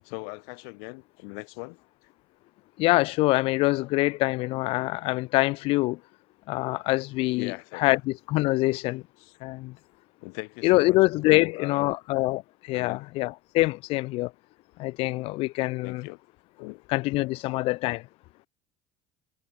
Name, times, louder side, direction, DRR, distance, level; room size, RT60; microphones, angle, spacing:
voice 1, 0.0-2.1 7.3-8.0 9.2-9.4 10.2-11.0 11.3-11.9 12.7-13.1 15.8-16.2 16.6-16.8, left 40 dB or more, 80° left, 4.2 m, -40 dB
voice 2, 2.8-6.0 6.5-7.5 7.8-9.0 9.4-9.8 10.6-14.3 14.8-16.1 16.9-18.0, left 21 dB, 60° left, 0.5 m, -25 dB
supercardioid pair, 120°, 11 cm